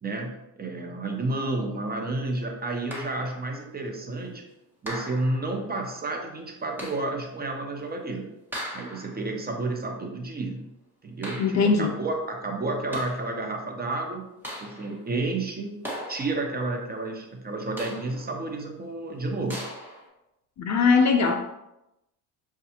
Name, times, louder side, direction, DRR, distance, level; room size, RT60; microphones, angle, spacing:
voice 1, 0.0-4.4 4.8-8.3 8.7-10.7 11.0-14.2 14.6-15.7 16.1-19.6, right 2 dB, 20° right, 2 dB, 0.8 m, -31 dB
sound 1, 2.9-3.5 4.9-5.6 6.8-7.2 8.5-9.3 11.2-11.8 12.7-13.3 14.4-15.0 15.8-16.6 17.8-18.3 19.5-20.1, equal, 5° right, 1.4 m, -38 dB
voice 2, 11.4-11.9 20.6-21.4, left 4 dB, 45° left, 4 dB, 0.5 m, -20 dB
6.6 x 2.4 x 2.8 m, 0.90 s
supercardioid pair, 95°, 41 cm